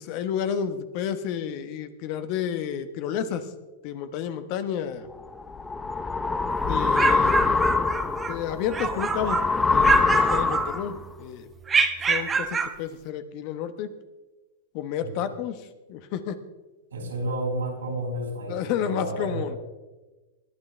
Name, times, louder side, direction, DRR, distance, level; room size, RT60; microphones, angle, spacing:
voice 1, 0.0-3.5 3.8-5.1 6.7-7.3 8.3-11.5 12.1-13.9 14.7-16.4 18.5-19.6, left 8 dB, 50° left, 10 dB, 1.1 m, -31 dB
sound 1, 5.2-11.0, left 4 dB, 15° left, 0.8 m, -24 dB
sound 2, 6.7-8.4 8.7-9.5 9.8-11.1 11.7-12.8, right 5 dB, 20° right, 1.1 m, -26 dB
voice 2, 15.0-15.3 16.9-19.5, right 1 dB, 85° right, 1 dB, 4.6 m, -31 dB
20.5 x 12.0 x 3.4 m, 1.2 s
hypercardioid pair, 115°, 0 cm